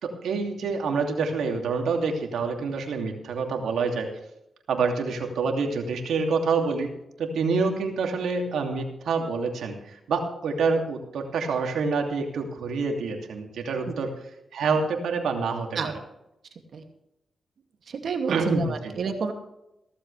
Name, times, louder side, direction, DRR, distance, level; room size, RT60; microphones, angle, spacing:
voice 1, 0.0-4.1 4.7-6.9 7.2-14.1 14.5-16.0 18.3-18.9, right 4 dB, 90° right, 3 dB, 2.7 m, -27 dB
voice 2, 17.9-19.3, right 5 dB, 70° right, 4 dB, 2.5 m, -29 dB
16.0 x 14.5 x 3.4 m, 0.85 s
cardioid pair, 70°, 0 cm